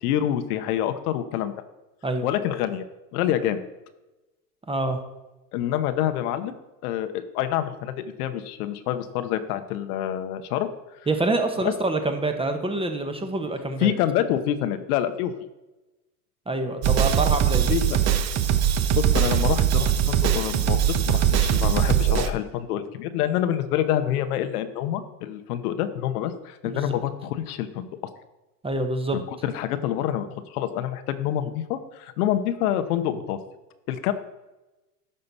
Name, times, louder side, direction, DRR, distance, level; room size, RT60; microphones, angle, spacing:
voice 1, 0.0-1.5 2.2-2.8 3.1-3.7 5.5-6.5 6.8-10.7 11.6-11.7 13.8-15.3 17.7-18.0 18.9-20.8 21.0-27.9 29.1-33.4 33.9-34.1, left 11 dB, 65° left, 10 dB, 1.0 m, -27 dB
voice 2, 4.7-5.0 11.1-13.9 16.5-17.7 26.6-26.8 28.6-29.2, right 2 dB, 10° right, 6 dB, 1.1 m, -26 dB
sound 1, 16.8-22.3, right 9 dB, 35° right, 0.9 m, -21 dB
11.0 x 6.6 x 4.2 m, 1.0 s
hypercardioid pair, 95°, 48 cm